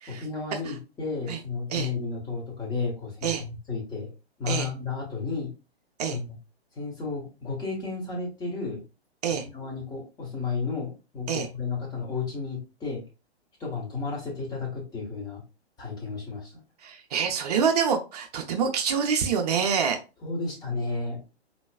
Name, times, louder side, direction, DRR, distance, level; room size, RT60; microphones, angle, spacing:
voice 1, 0.1-4.1 4.4-5.5 6.1-6.3 6.7-8.8 9.4-13.0 13.6-15.4 15.8-16.5 20.2-21.4, left 4 dB, 10° left, -2 dB, 1.2 m, -33 dB
voice 2, 16.8-20.0, right 6 dB, 40° right, 4 dB, 0.7 m, -26 dB
4.1 x 3.0 x 2.2 m, 0.30 s
figure-of-eight pair, 120°, 33 cm